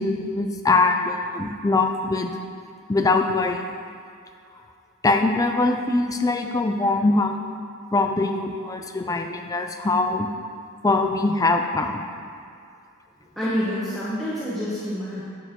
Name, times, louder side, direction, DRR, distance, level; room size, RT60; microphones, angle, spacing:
voice 1, 0.0-2.4 2.9-3.7 5.0-7.4 7.9-10.4 10.8-12.0, left 3 dB, 15° left, 4 dB, 0.3 m, -22 dB
voice 2, 13.4-15.2, equal, ahead, -10 dB, 0.9 m, -27 dB
9.0 x 6.3 x 3.0 m, 2.4 s
head